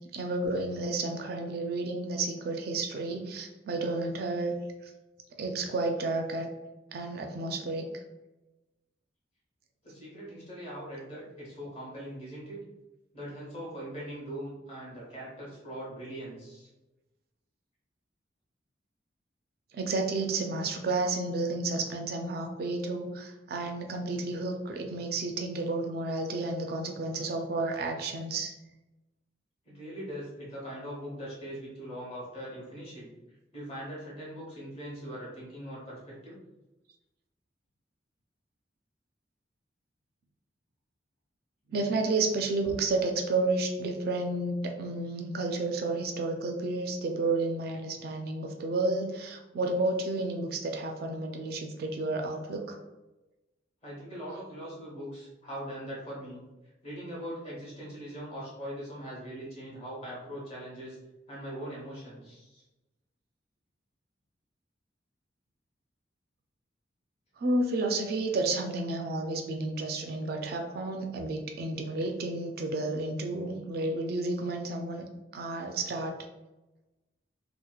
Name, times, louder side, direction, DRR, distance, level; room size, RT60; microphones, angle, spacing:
voice 1, 0.1-4.5 4.8-4.9 5.4-6.5 6.9-7.9 19.7-28.5 41.7-52.8 67.4-75.0 75.3-76.1, right 2 dB, 55° right, 3 dB, 0.3 m, -31 dB
voice 2, 9.8-12.6 13.1-16.7 29.6-33.1 33.5-36.4 53.8-56.4 56.8-61.0 61.3-62.6, equal, 35° left, -6 dB, 1.0 m, -41 dB
2.8 x 2.1 x 2.3 m, 1.0 s
head